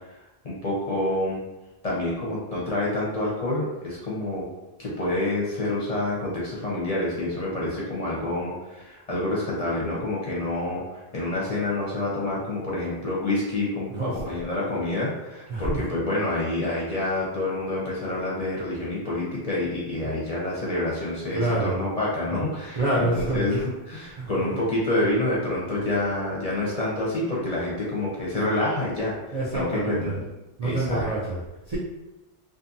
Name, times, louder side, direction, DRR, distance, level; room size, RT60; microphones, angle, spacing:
voice 1, 0.4-1.4 1.8-4.5 4.8-29.2 29.5-30.1 30.6-31.1, left 2 dB, 40° left, -6 dB, 0.6 m, -27 dB
voice 2, 13.9-14.4 15.5-15.8 20.0-20.2 21.3-21.9 22.3-22.4 22.7-23.5 24.1-24.6 25.0-25.1 29.3-30.2 30.6-31.8, right 2 dB, 50° right, -7 dB, 0.5 m, -28 dB
2.5 x 2.5 x 2.6 m, 1.0 s
omnidirectional pair, 1.1 m